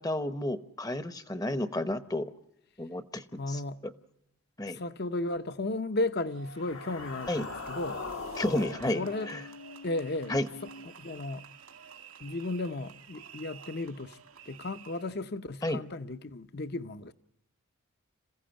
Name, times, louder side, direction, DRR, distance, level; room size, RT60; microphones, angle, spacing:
voice 1, 0.0-2.3 2.8-3.6 4.6-4.8 7.3-7.5 8.4-9.4 10.3-10.5 15.6-15.8, left 1 dB, 15° left, 0.8 m, -31 dB
voice 2, 3.4-3.8 4.6-8.0 8.9-9.3 9.8-10.4 10.9-11.4 12.2-14.2 14.5-17.1, left 2 dB, 45° left, 0.8 m, -34 dB
sound 1, 6.3-15.2, right 6 dB, 80° right, 2.1 m, -50 dB
sound 2, 6.5-10.9, left 4 dB, 70° left, 1.3 m, -42 dB
27.0 x 15.5 x 8.8 m
head